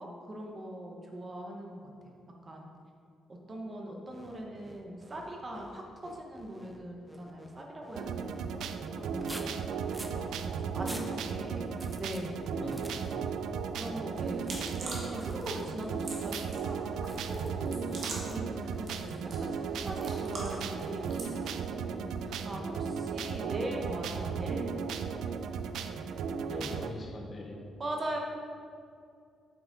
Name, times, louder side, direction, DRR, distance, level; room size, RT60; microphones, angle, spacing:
voice 1, 0.0-2.1 2.4-2.7 3.5-9.6 9.9-12.3 13.7-14.4 14.8-16.8 17.4-19.6 19.8-21.2 21.9-24.7 27.8-28.2, right 1 dB, 25° right, 0 dB, 1.0 m, -41 dB
sound 1, 4.1-8.5 9.1-10.2 10.7-11.2 11.7-12.2 12.6-13.2 14.5-14.8 15.1-15.7 16.1-16.4 17.0-17.5 17.9-18.4 19.8-20.1 20.5-20.8 21.4-21.8, right 1 dB, 10° right, 0.5 m, -48 dB
sound 2, 7.9-26.9, right 6 dB, 90° right, 0.4 m, -35 dB
voice 2, 11.1-11.5 12.5-13.3 22.5-22.8 26.5-27.6, left 2 dB, 30° left, 0 dB, 0.9 m, -43 dB
sound 3, 14.1-21.4, right 2 dB, 55° right, 1.7 m, -45 dB
8.7 x 5.8 x 4.0 m, 2.3 s
cardioid pair, 155°, 0 cm